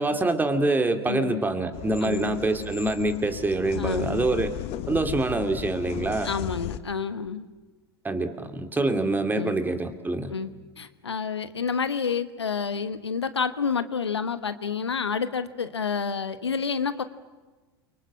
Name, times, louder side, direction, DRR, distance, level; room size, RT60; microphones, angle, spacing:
voice 1, 0.0-4.5 4.9-6.3 8.0-10.3, right 2 dB, 15° right, 7 dB, 2.5 m, -25 dB
voice 2, 1.0-1.4 2.0-2.4 3.8-4.2 6.2-7.5 9.4-9.6 10.3-17.0, left 6 dB, 90° left, 12 dB, 1.2 m, -29 dB
sound 1, 1.7-6.8, left 13 dB, 50° left, 1.3 m, -36 dB
29.0 x 24.5 x 7.5 m, 1.2 s
hypercardioid pair, 85°, 14 cm